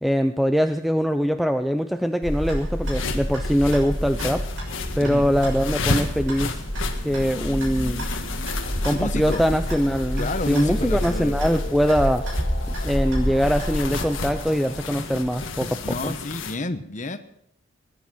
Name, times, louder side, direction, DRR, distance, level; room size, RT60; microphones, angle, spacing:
voice 1, 0.0-4.5 5.0-6.6 7.0-8.1 8.8-12.3 12.8-16.2, equal, ahead, 8 dB, 0.5 m, -23 dB
Clock, 2.2-14.4, equal, 85° right, 6.5 m, -29 dB
sound 1, 2.8-16.6, left 3 dB, 80° left, 1.8 m, -33 dB
sound 2, 6.5-15.9, left 2 dB, 60° left, 2.0 m, -41 dB
voice 2, 8.9-9.4 10.2-11.3 15.8-17.2, left 2 dB, 40° left, 9 dB, 1.1 m, -29 dB
20.5 x 10.5 x 6.2 m, 0.74 s
head